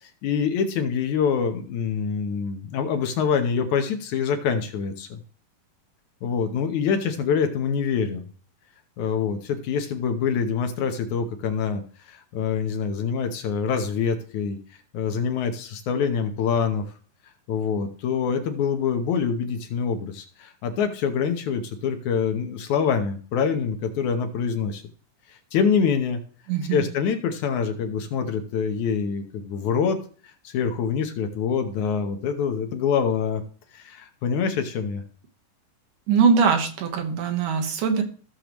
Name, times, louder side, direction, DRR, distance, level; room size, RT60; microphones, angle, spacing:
voice 1, 0.0-5.2 6.2-8.3 9.0-14.6 14.9-16.9 17.5-24.8 25.3-26.2 26.7-30.0 30.2-33.4 33.7-35.0, left 6 dB, 70° left, 6 dB, 2.3 m, -25 dB
voice 2, 26.5-26.9 36.1-38.0, right 6 dB, 75° right, 5 dB, 2.8 m, -21 dB
15.5 x 6.6 x 3.1 m, 0.42 s
omnidirectional pair, 3.8 m